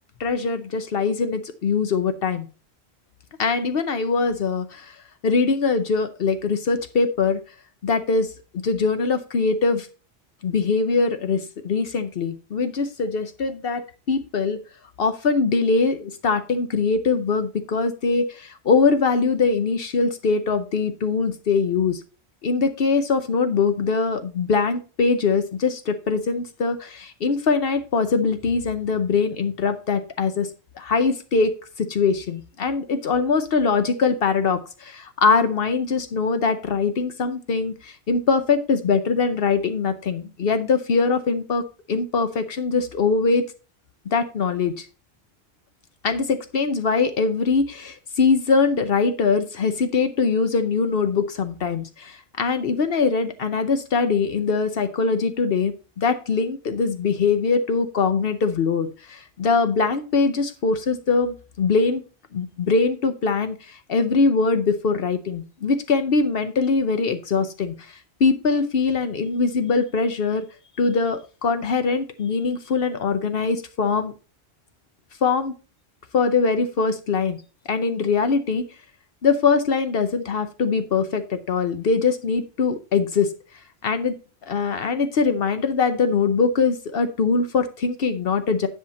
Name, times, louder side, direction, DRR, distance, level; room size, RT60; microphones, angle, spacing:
voice 1, 0.2-2.5 3.4-4.9 5.2-7.4 7.8-8.3 8.6-9.9 10.4-14.6 15.0-22.0 22.4-30.5 30.8-41.6 41.9-43.4 44.1-44.9 46.0-62.0 62.3-70.5 70.8-74.1 75.2-75.5 76.1-77.4 77.7-78.6 79.2-83.3 83.8-84.1 84.5-88.7, left 4 dB, 65° left, 9 dB, 0.9 m, -22 dB
10.0 x 5.7 x 4.1 m, 0.34 s
omnidirectional pair, 1.1 m